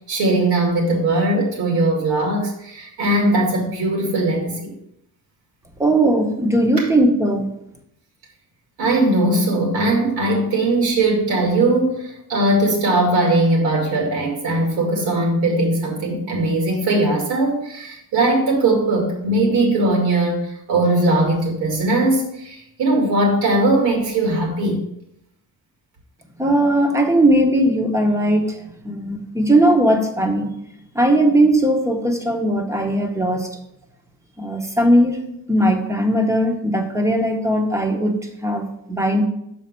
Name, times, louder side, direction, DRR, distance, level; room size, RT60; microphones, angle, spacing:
voice 1, 0.1-4.7 6.8-6.9 8.8-24.8, right 2 dB, 85° right, 0 dB, 2.5 m, -19 dB
voice 2, 5.8-7.5 26.4-28.6 28.8-30.5 30.9-33.5 34.4-35.2 35.5-39.2, right 1 dB, 10° right, 4 dB, 0.9 m, -18 dB
6.4 x 4.4 x 5.2 m, 0.77 s
cardioid pair, 150°, 36 cm